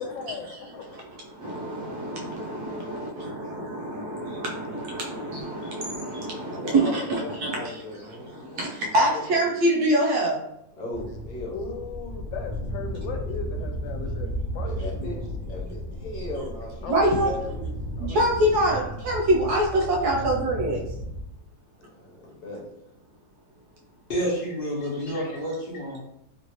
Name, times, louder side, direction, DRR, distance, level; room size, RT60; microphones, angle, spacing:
voice 1, 0.0-0.9 2.9-3.0 11.5-15.1 15.5-15.7 16.8-18.3, left 5 dB, 90° left, 4 dB, 1.3 m, -37 dB
voice 2, 0.9-10.4 16.9-17.3 18.0-20.8 24.9-25.0, right 1 dB, 70° right, -2 dB, 1.0 m, -25 dB
voice 3, 6.4-9.6 10.8-11.9 14.6-15.2 15.5-17.6 21.8-22.6, left 1 dB, 60° left, -4 dB, 1.4 m, -37 dB
sound 1, 10.9-21.3, equal, 35° right, 1.0 m, -34 dB
voice 4, 24.1-26.0, equal, 35° left, -5 dB, 1.1 m, -29 dB
3.2 x 2.6 x 2.9 m, 0.80 s
omnidirectional pair, 2.0 m